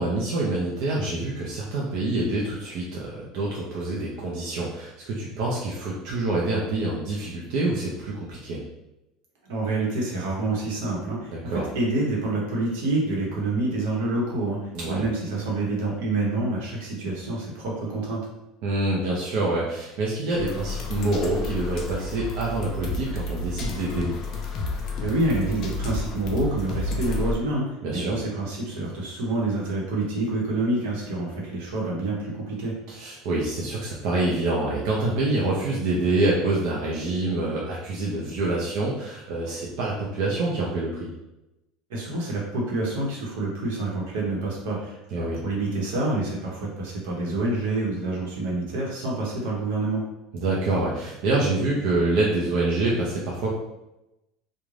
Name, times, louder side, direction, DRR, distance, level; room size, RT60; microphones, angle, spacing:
voice 1, 0.0-8.6 11.3-11.7 14.7-15.0 18.6-24.1 27.8-28.2 32.9-41.1 45.1-45.4 50.3-53.5, right 2 dB, 55° right, -4 dB, 0.5 m, -26 dB
voice 2, 9.5-14.6 14.8-18.2 25.0-32.7 41.9-50.0, right 2 dB, 85° right, -3 dB, 0.9 m, -27 dB
sound 1, 20.3-27.3, left 2 dB, 40° left, 0.4 m, -31 dB
2.5 x 2.1 x 3.1 m, 0.93 s
cardioid pair, 160°, 0 cm